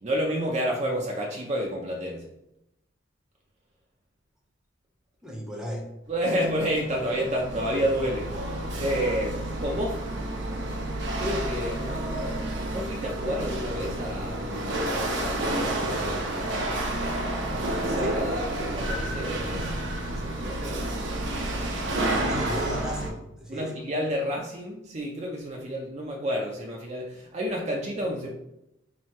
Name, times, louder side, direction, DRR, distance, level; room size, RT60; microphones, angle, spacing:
voice 1, 0.0-2.3 6.1-10.0 11.2-12.3 12.7-16.2 17.5-20.8 23.5-28.3, equal, 35° right, 0 dB, 0.5 m, -30 dB
voice 2, 5.2-5.9 18.0-18.2 22.2-23.7, equal, 5° right, -1 dB, 0.7 m, -34 dB
Chatter / Hiss / Rattle, 6.2-23.1, right 1 dB, 65° right, 0.7 m, -30 dB
2.9 x 2.7 x 4.3 m, 0.85 s
head